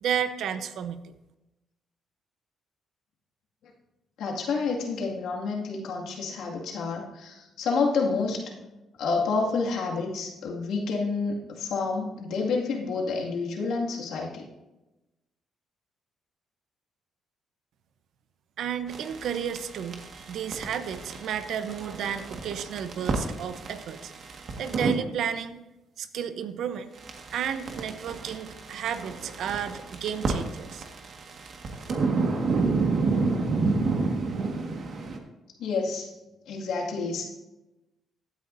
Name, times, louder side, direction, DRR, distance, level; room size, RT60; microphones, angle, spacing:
voice 1, 0.0-1.1 18.6-24.1 24.6-25.6 26.0-26.9 27.3-30.8, right 8 dB, 75° right, 11 dB, 0.8 m, -32 dB
voice 2, 4.2-8.5 9.0-14.5 35.6-36.1 36.5-37.2, left 4 dB, 80° left, -1 dB, 2.1 m, -29 dB
sound 1, 18.9-24.9 27.0-35.2, right 3 dB, 55° right, 1.7 m, -30 dB
15.5 x 9.3 x 2.7 m, 1.0 s
cardioid pair, 90°, 0 cm